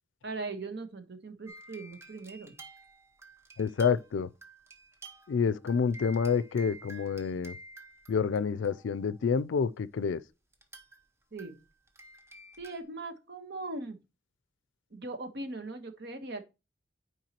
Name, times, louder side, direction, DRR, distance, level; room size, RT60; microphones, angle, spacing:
voice 1, 0.2-2.5 11.3-11.6 12.6-14.0 14.9-16.5, right 3 dB, 60° right, 1.2 m, -40 dB
sound 1, 1.5-9.2 10.5-11.0 11.4-12.8, right 2 dB, 15° right, 0.8 m, -51 dB
voice 2, 3.6-4.3 5.3-7.6 8.1-10.2, left 6 dB, 80° left, 0.4 m, -28 dB
9.1 x 4.6 x 2.9 m
head